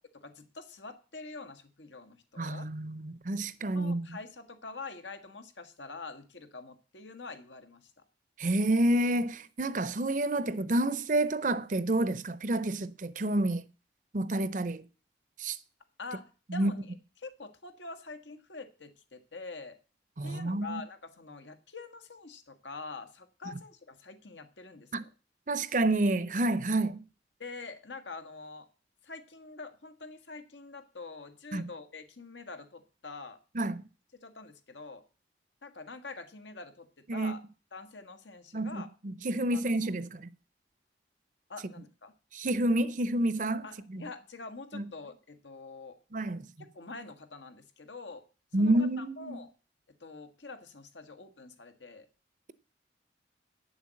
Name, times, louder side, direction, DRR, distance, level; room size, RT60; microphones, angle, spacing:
voice 1, 0.1-2.7 3.7-8.0 16.0-19.8 20.2-25.1 27.4-28.7 29.0-33.4 34.2-35.0 35.6-36.9 37.1-37.4 37.7-38.9 39.5-39.9 41.5-42.1 43.6-46.0 46.7-48.2 48.6-49.5 50.0-52.1, left 3 dB, 85° left, 1.6 m, -45 dB
voice 2, 2.4-4.2 8.4-13.6 14.1-14.8 15.4-15.6 16.5-16.7 20.2-20.8 24.9-25.0 25.5-27.0 31.5-31.7 33.5-33.8 37.1-37.3 38.5-40.3 42.3-44.0 44.7-44.8 46.1-46.5 48.5-49.4, right 1 dB, 45° right, 0.6 m, -29 dB
9.2 x 7.2 x 7.6 m
head